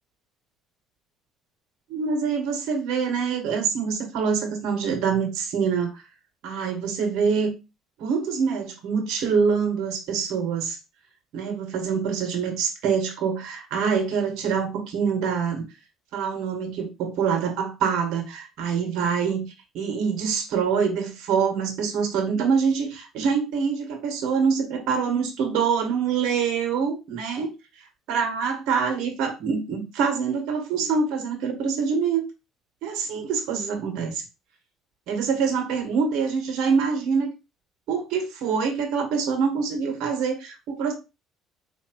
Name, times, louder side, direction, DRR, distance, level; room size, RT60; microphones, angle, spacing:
voice 1, 1.9-6.0 6.4-7.5 8.0-10.8 11.3-15.6 16.1-19.4 19.7-27.5 28.1-32.2 32.8-34.2 35.1-37.3 37.9-40.9, right 6 dB, 70° right, 1.2 m, -25 dB
4.3 x 2.8 x 2.9 m
cardioid pair, 100°, 0 cm